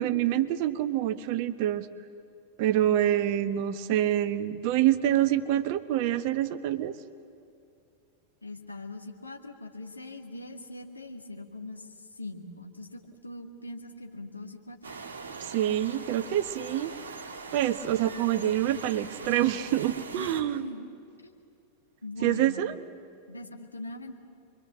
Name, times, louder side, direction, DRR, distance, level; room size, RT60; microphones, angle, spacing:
voice 1, 0.0-1.9 2.6-6.9 15.4-16.9 17.5-20.6 22.2-22.7, right 12 dB, 45° right, 11 dB, 1.1 m, -26 dB
voice 2, 8.4-14.8 20.1-20.9 21.2-21.3 22.0-22.6 23.3-24.2, left 2 dB, 80° left, 3 dB, 2.2 m, -41 dB
sound 1, 14.8-20.4, right 4 dB, 70° right, 1.9 m, -42 dB
26.5 x 23.5 x 7.6 m, 2.6 s
figure-of-eight pair, 90°, 0 cm